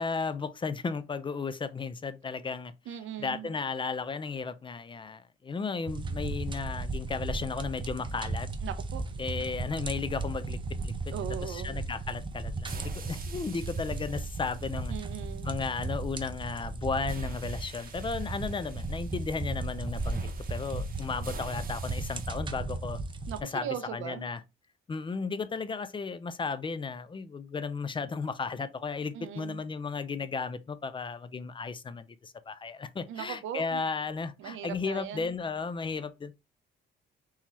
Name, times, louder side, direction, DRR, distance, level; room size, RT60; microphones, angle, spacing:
voice 1, 0.0-2.7 3.2-8.5 9.2-11.1 11.4-14.9 15.5-23.0 23.4-24.4 24.9-36.3, left 4 dB, 25° left, 0.4 m, -34 dB
voice 2, 2.9-3.5 8.6-9.1 11.1-11.8 14.9-15.5 23.3-24.3 29.1-29.6 33.1-33.8 34.4-35.4, right 9 dB, 80° right, 0.7 m, -39 dB
sound 1, 5.9-23.4, right 3 dB, 25° right, 0.5 m, -36 dB
sound 2, 12.6-16.5 17.1-22.3, right 4 dB, 45° right, 0.9 m, -48 dB
3.7 x 2.9 x 3.0 m
cardioid pair, 90°, 20 cm